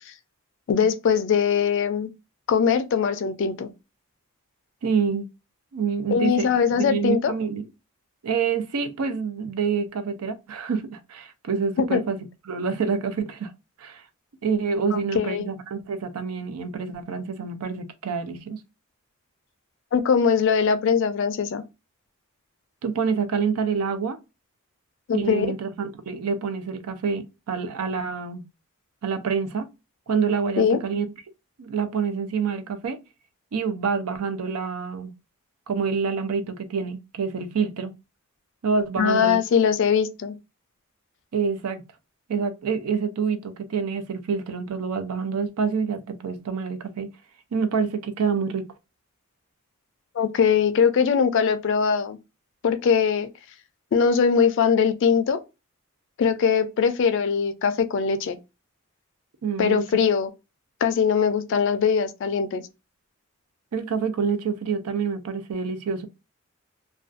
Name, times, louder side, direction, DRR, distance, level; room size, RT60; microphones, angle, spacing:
voice 1, 0.7-2.1 2.5-3.7 6.1-7.3 11.8-12.0 14.9-15.5 19.9-21.6 25.1-25.5 30.6-30.8 39.0-40.4 50.2-52.2 52.6-53.3 53.9-55.4 56.2-58.4 59.6-60.3 60.8-62.7, left 6 dB, 60° left, 0.3 m, -21 dB
voice 2, 4.8-5.2 5.7-7.6 8.2-12.2 12.5-13.5 13.8-14.0 14.4-18.6 22.8-24.2 25.1-28.4 29.0-29.7 30.1-31.1 31.6-33.0 33.5-35.1 35.7-37.9 38.6-39.4 41.3-41.8 42.3-47.1 47.5-48.7 59.4-59.8 63.7-66.1, right 5 dB, 90° right, 0.4 m, -27 dB
2.4 x 2.2 x 2.4 m
head